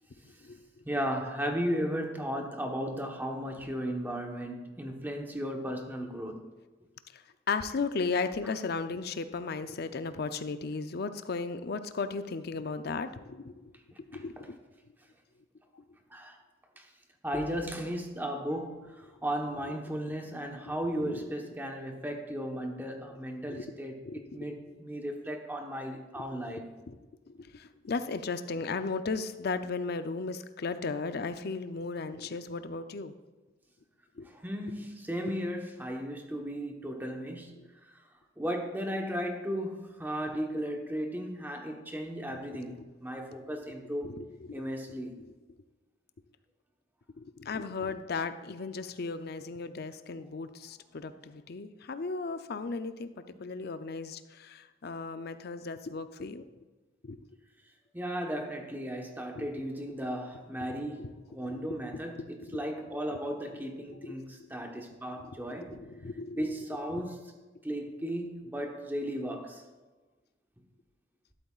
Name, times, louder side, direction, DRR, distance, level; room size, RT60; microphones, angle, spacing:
voice 1, 0.2-0.6 7.1-13.6 14.1-14.6 15.7-15.8 20.7-21.2 23.5-23.7 24.1-24.5 26.9-27.0 27.3-33.1 34.2-34.3 37.6-37.7 42.3-42.4 42.8-42.9 44.0-44.6 45.2-45.3 47.2-56.4 57.0-57.2 59.3-59.5 60.7-61.1 61.4-61.6 61.9-62.0 62.4-62.6 63.1-63.2 63.9-64.1 64.7-64.8 65.2-66.5 66.9-67.0, left 4 dB, 60° left, 0.6 m, -36 dB
voice 2, 0.8-6.4 16.1-16.4 16.8-16.9 17.2-26.7 34.3-37.6 38.4-44.2 44.5-45.1 57.9-66.0 66.3-67.2 67.6-69.6, equal, 10° right, 1.1 m, -35 dB
12.0 x 12.0 x 2.4 m
head